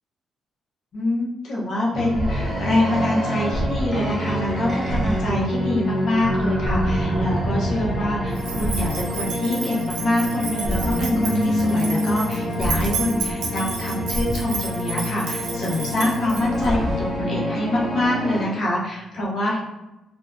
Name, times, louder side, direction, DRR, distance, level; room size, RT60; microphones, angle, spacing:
voice 1, 0.9-19.6, left 1 dB, 65° left, -4 dB, 0.8 m, -25 dB
sound 1, 1.9-18.5, equal, ahead, 0.7 m, -25 dB
sound 2, 8.4-16.7, right 5 dB, 90° right, 0.5 m, -32 dB
2.7 x 2.2 x 2.4 m, 0.98 s
cardioid pair, 90°, 0 cm